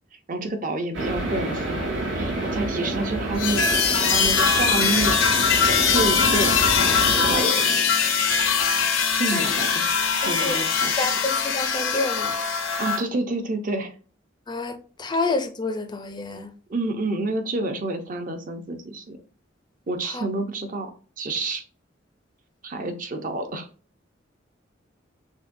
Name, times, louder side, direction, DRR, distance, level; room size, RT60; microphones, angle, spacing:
voice 1, 0.3-1.8 2.2-5.3 5.6-6.6 7.2-7.9 9.1-9.9 10.2-11.2 12.8-13.9 16.7-19.2 19.9-20.9 21.2-21.6 22.6-23.7, right 2 dB, 45° right, 0.6 m, -28 dB
sound 1, 0.9-7.4, right 2 dB, 75° right, 1.4 m, -28 dB
sound 2, 3.4-13.0, left 6 dB, 85° left, 0.6 m, -22 dB
voice 2, 10.2-10.6 11.0-12.4 14.5-16.5 20.1-20.2, left 3 dB, 20° left, 0.4 m, -29 dB
6.3 x 2.2 x 2.6 m
head